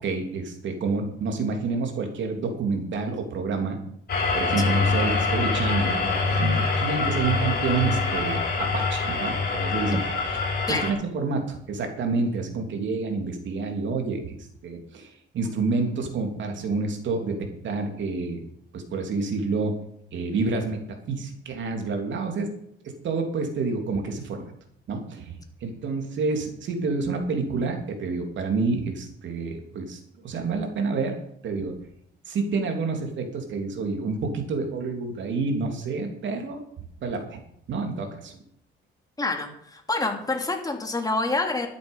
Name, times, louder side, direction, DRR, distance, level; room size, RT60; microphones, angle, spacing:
voice 1, 0.0-3.8 4.3-10.0 10.8-14.4 14.6-18.4 18.7-19.7 20.1-20.8 21.1-22.5 22.8-24.4 24.9-25.3 25.6-30.0 30.2-31.7 32.3-36.6 37.0-37.4 37.7-38.4, right 4 dB, 70° right, 4 dB, 3.3 m, -28 dB
sound 1, 4.1-10.9, left 4 dB, 50° left, 5.9 m, -25 dB
voice 2, 39.2-41.7, left 2 dB, 20° left, 3 dB, 3.0 m, -27 dB
12.5 x 10.5 x 5.6 m, 0.71 s
cardioid pair, 90°, 20 cm